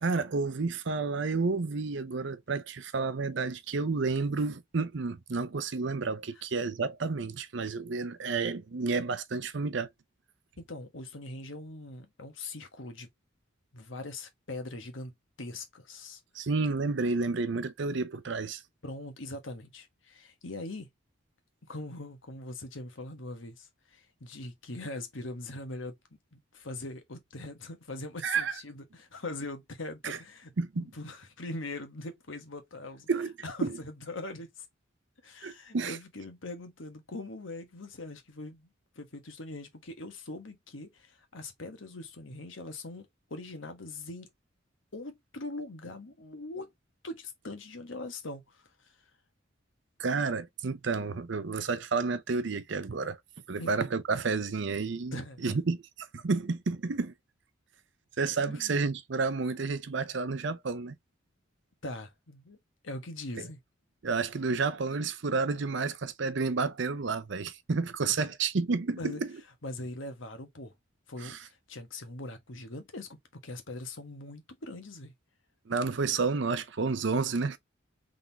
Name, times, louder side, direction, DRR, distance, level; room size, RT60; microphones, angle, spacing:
voice 1, 0.0-9.9 16.3-18.6 28.2-28.5 30.0-30.2 30.6-30.9 33.1-33.3 33.6-33.8 35.4-36.0 50.0-53.2 53.5-55.8 56.1-57.1 58.2-61.0 63.4-63.5 64.0-69.3 71.2-71.4 75.7-77.6, right 4 dB, 60° right, 0.6 m, -30 dB
voice 2, 10.6-13.1 13.7-15.1 15.4-16.5 18.8-20.9 21.7-26.0 26.3-33.1 33.4-34.7 35.2-38.7 38.9-44.3 44.9-46.7 47.0-49.0 53.6-53.7 55.1-55.6 58.5-58.8 61.8-62.6 62.8-63.6 68.2-68.3 69.0-69.2 69.6-70.7 71.1-75.1, left 2 dB, 70° left, 1.3 m, -42 dB
3.8 x 3.7 x 2.8 m
head